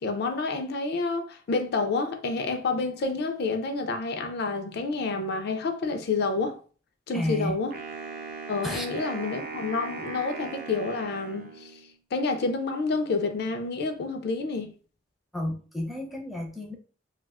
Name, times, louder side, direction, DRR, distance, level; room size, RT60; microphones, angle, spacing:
voice 1, 0.0-6.6 7.1-7.7 8.5-11.8 12.1-14.7, left 3 dB, 60° left, 0.4 m, -29 dB
voice 2, 7.1-7.6 8.6-8.9 15.3-16.8, left 1 dB, ahead, 0.5 m, -31 dB
Wind instrument woodwind instrument, 7.7-11.9, right 4 dB, 50° right, 0.6 m, -39 dB
2.3 x 2.2 x 3.4 m
head